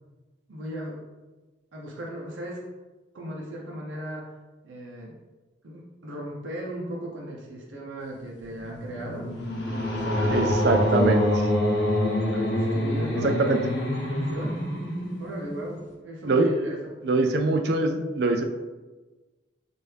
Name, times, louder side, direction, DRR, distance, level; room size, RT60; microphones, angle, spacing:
voice 1, 0.5-1.0 1.7-2.6 3.1-4.3 4.6-5.2 5.6-9.3 9.7-10.5 10.8-11.1 12.3-13.4 14.2-14.5 15.2-16.8 17.2-17.4, right 1 dB, 90° right, -3 dB, 0.7 m, -37 dB
sound 1, 8.5-15.8, left 1 dB, 70° left, 0.7 m, -26 dB
voice 2, 10.3-11.2 13.2-13.6 16.2-16.5 17.0-18.4, right 3 dB, 60° right, 4 dB, 0.4 m, -23 dB
4.6 x 2.5 x 3.3 m, 1.2 s
head